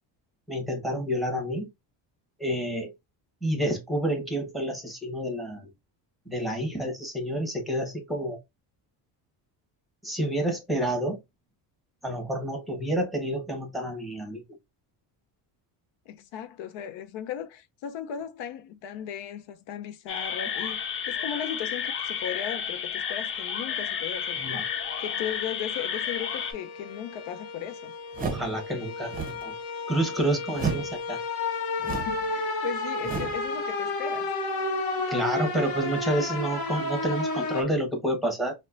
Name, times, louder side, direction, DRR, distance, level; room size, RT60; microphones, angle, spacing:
voice 1, 0.5-1.7 2.4-2.9 3.4-5.7 6.3-8.4 10.0-11.2 12.0-14.4 24.4-24.6 28.2-29.1 29.4-29.5 29.9-31.2 35.1-38.5, right 1 dB, ahead, 1.1 m, -29 dB
voice 2, 16.1-24.4 25.0-27.9 31.9-34.3, left 9 dB, 75° left, 0.6 m, -37 dB
sound 1, 20.1-26.5, left 7 dB, 30° left, 0.4 m, -31 dB
sound 2, 24.1-37.6, left 2 dB, 55° left, 1.0 m, -32 dB
sound 3, 28.1-28.6 29.0-29.5 30.5-31.0 31.8-32.3 33.0-33.5, right 5 dB, 20° right, 0.7 m, -32 dB
4.1 x 2.2 x 2.4 m
cardioid pair, 120°, 45 cm